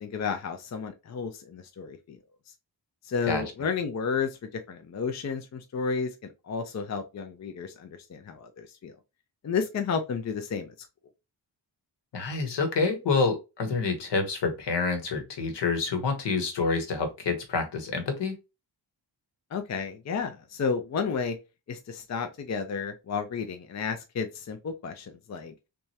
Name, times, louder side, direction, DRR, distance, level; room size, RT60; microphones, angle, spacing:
voice 1, 0.0-2.2 3.0-6.1 6.4-8.9 9.4-10.7 19.5-21.4 21.7-25.5, left 5 dB, 40° left, 0.5 m, -32 dB
voice 2, 12.1-18.3, left 4 dB, 70° left, 1.2 m, -27 dB
3.5 x 3.1 x 2.7 m
wide cardioid pair, 150°, 43 cm